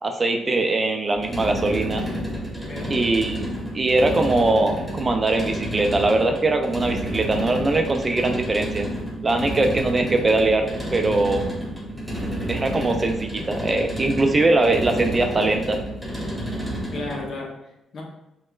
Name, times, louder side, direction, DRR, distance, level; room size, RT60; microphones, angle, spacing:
voice 1, 0.0-2.0 2.9-3.5 3.7-8.9 9.2-11.5 12.5-15.8, right 2 dB, 30° right, 4 dB, 0.4 m, -21 dB
sound 1, 1.1-17.3, equal, 5° right, 0.9 m, -30 dB
voice 2, 2.6-3.0 16.9-18.0, left 2 dB, 55° left, -1 dB, 0.8 m, -34 dB
4.2 x 2.1 x 2.3 m, 0.88 s
cardioid pair, 90°, 0 cm